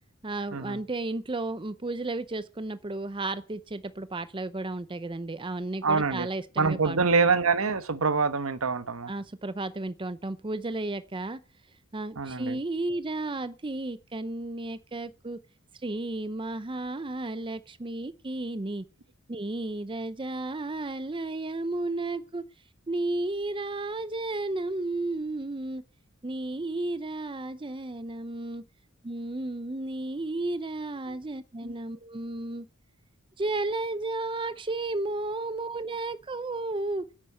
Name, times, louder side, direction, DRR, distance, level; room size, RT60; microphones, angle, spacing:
voice 1, 0.2-7.3 9.1-11.4 11.9-15.4 15.7-18.9 19.3-22.4 22.9-25.8 26.2-28.6 29.0-32.7 33.4-37.1, right 2 dB, 25° right, 0.6 m, -33 dB
voice 2, 5.8-6.3 6.6-9.1 12.2-12.6 31.6-31.7, right 4 dB, 75° right, 1.1 m, -25 dB
10.5 x 8.7 x 8.6 m
head